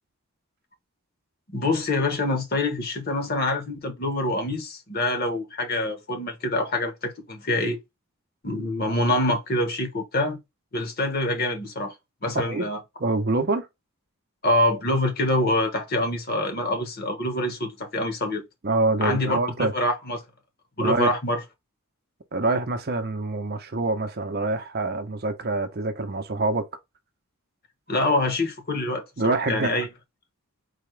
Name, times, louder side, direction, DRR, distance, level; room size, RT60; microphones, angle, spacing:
voice 1, 1.5-7.8 8.4-10.4 10.7-11.9 12.2-12.8 14.4-18.4 19.0-20.2 20.8-21.4 27.9-29.9, left 1 dB, 45° left, 1.1 m, -25 dB
voice 2, 13.0-13.7 18.6-19.7 20.8-21.2 22.3-26.7 29.2-29.8, right 2 dB, 45° right, 0.6 m, -25 dB
4.1 x 2.8 x 3.2 m
head